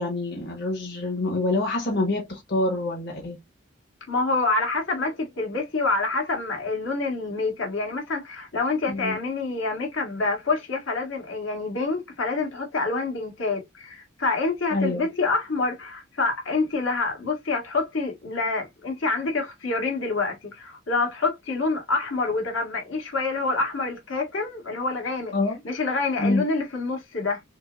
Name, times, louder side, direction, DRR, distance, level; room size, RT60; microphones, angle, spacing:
voice 1, 0.0-3.4 8.9-9.2 14.7-15.1 25.3-25.6 26.2-26.4, left 2 dB, 55° left, 1.4 m, -26 dB
voice 2, 4.1-25.3 25.6-27.4, left 3 dB, 80° left, 1.7 m, -27 dB
6.3 x 2.1 x 2.5 m
head